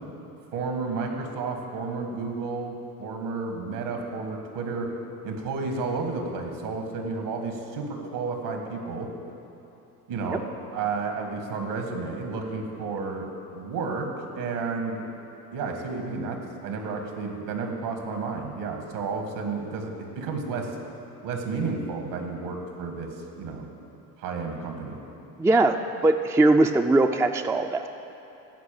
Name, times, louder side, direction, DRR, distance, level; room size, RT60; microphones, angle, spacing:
voice 1, 0.5-4.9 5.2-9.1 10.1-10.4 10.7-13.3 13.5-15.0 15.5-20.7 21.2-23.1 23.4-23.7 24.2-25.0, right 4 dB, 70° right, 3 dB, 2.0 m, -31 dB
voice 2, 25.4-25.8 26.0-27.9, right 2 dB, 5° right, 6 dB, 0.4 m, -20 dB
14.0 x 4.8 x 7.7 m, 2.9 s
hypercardioid pair, 65°, 43 cm